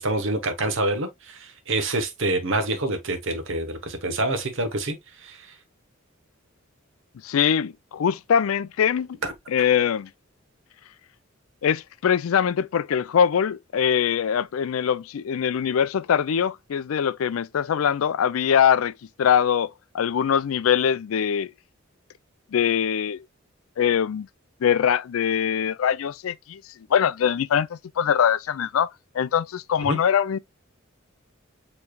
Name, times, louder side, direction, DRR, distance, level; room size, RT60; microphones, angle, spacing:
voice 1, 0.0-5.4 9.2-9.3 29.8-30.0, right 2 dB, 65° right, 1.0 m, -27 dB
voice 2, 7.2-9.2 9.5-10.1 11.6-18.9 19.2-21.5 22.5-23.2 23.8-24.3 24.6-26.6 26.9-30.4, left 8 dB, 85° left, 0.4 m, -22 dB
7.0 x 3.2 x 2.2 m
head